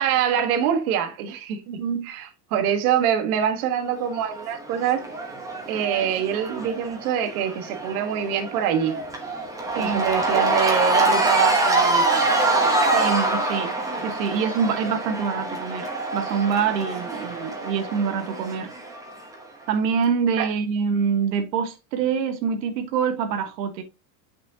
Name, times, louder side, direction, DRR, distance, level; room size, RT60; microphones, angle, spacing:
voice 1, 0.0-1.6 2.0-5.0 5.7-9.0 9.7-12.2 20.4-20.5, right 9 dB, 60° right, 1.4 m, -24 dB
voice 2, 1.7-2.1 9.7-10.0 12.9-13.7 14.0-18.7 19.7-23.8, right 6 dB, 85° right, 1.5 m, -25 dB
Cheering / Crowd, 4.1-19.3, right 2 dB, 5° right, 1.0 m, -25 dB
8.0 x 6.3 x 2.8 m
supercardioid pair, 170°, 49 cm